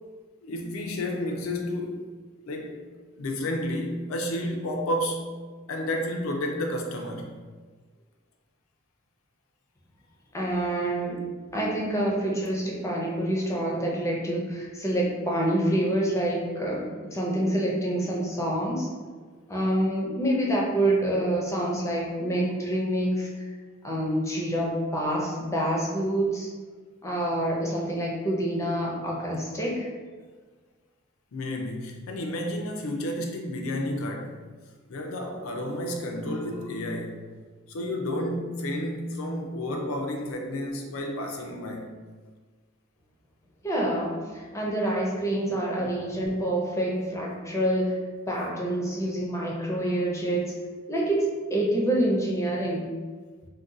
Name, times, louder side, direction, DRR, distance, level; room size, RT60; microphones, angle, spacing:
voice 1, 0.4-2.0 2.5-2.7 3.2-5.3 5.7-7.4 31.3-34.4 34.9-37.2 37.7-41.9 45.8-45.9, left 1 dB, 80° left, 2 dB, 0.5 m, -31 dB
voice 2, 10.3-11.2 11.5-18.9 19.5-23.4 23.8-26.5 27.0-29.9 43.6-48.0 48.3-50.5 50.9-52.9, right 1 dB, 15° left, -3 dB, 0.5 m, -27 dB
2.6 x 2.2 x 3.7 m, 1.5 s
head